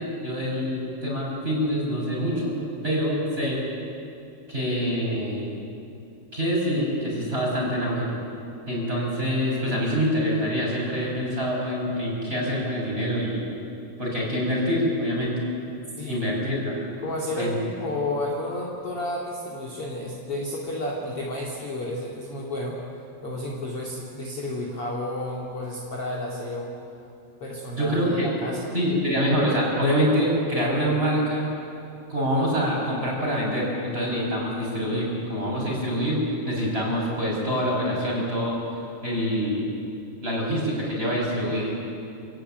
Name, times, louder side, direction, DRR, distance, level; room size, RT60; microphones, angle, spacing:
voice 1, 0.0-2.6 2.8-3.6 4.5-5.5 6.3-8.1 8.7-13.4 14.0-15.4 16.1-16.7 17.4-17.5 27.7-28.3 28.7-31.6 32.1-36.2 36.4-38.6 39.0-39.7 40.2-41.7, equal, 15° right, -3 dB, 6.7 m, -25 dB
voice 2, 17.0-22.8 23.2-26.7 27.4-28.6, left 1 dB, 40° left, -3 dB, 2.9 m, -31 dB
28.0 x 17.5 x 9.3 m, 2.8 s
omnidirectional pair, 4.5 m